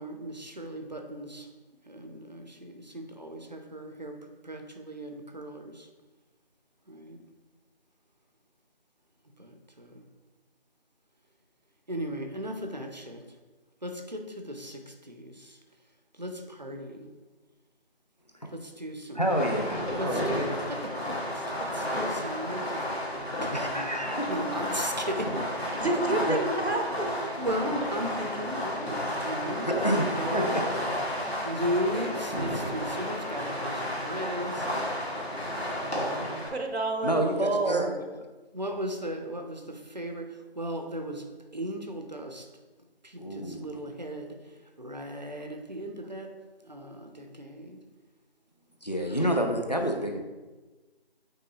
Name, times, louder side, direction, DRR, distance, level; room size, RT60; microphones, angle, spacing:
voice 1, 0.0-1.5 1.9-5.9 6.9-7.2 9.4-10.0 11.9-13.4 13.8-15.6 16.1-17.1 18.5-19.3 19.9-25.8 27.4-29.7 30.1-30.6 31.4-34.7 35.8-36.3 37.2-37.5 38.5-42.5 43.0-46.4 46.6-47.8 49.0-49.4, equal, 45° right, 5 dB, 0.4 m, -37 dB
voice 2, 19.1-20.6 23.5-24.4 25.8-25.9 26.3-26.4 29.8-30.7 36.2-36.5 37.0-37.9 43.2-43.7 48.8-50.2, equal, 45° left, 3 dB, 0.4 m, -29 dB
Fireworks, 19.2-36.5, equal, 80° left, 1.5 m, -32 dB
voice 3, 25.8-27.3 30.3-30.5 36.5-37.9, right 2 dB, 90° right, 4 dB, 0.9 m, -28 dB
5.4 x 3.6 x 2.7 m, 1.2 s
figure-of-eight pair, 170°, 31 cm